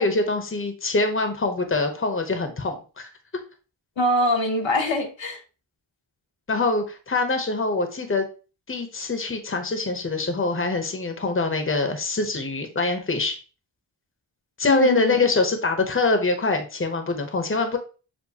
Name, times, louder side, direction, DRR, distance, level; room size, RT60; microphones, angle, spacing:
voice 1, 0.0-3.1 6.5-8.3 8.7-13.4 14.6-17.8, left 3 dB, 30° left, 0.8 m, -24 dB
voice 2, 4.0-5.4 14.7-15.3, left 2 dB, 75° left, 1.0 m, -23 dB
7.1 x 2.6 x 2.8 m
wide cardioid pair, 70°, 46 cm